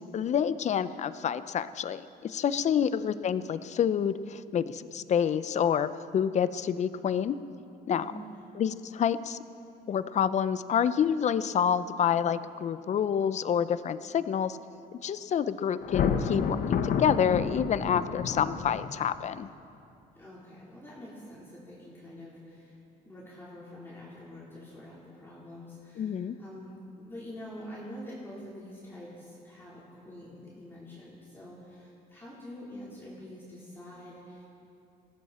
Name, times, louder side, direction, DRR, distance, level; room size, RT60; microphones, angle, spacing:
voice 1, 0.1-7.4 7.9-8.1 8.6-9.4 9.9-14.6 15.0-19.5 26.0-26.3, left 8 dB, 45° left, 14 dB, 0.6 m, -28 dB
voice 2, 2.8-3.1 7.9-8.5 20.2-22.8 23.0-34.5, left 1 dB, 15° left, -8 dB, 3.8 m, -46 dB
Thunder, 15.8-19.1, left 6 dB, 60° left, 1.0 m, -30 dB
20.0 x 16.0 x 4.3 m, 2.6 s
cardioid pair, 110°, 17 cm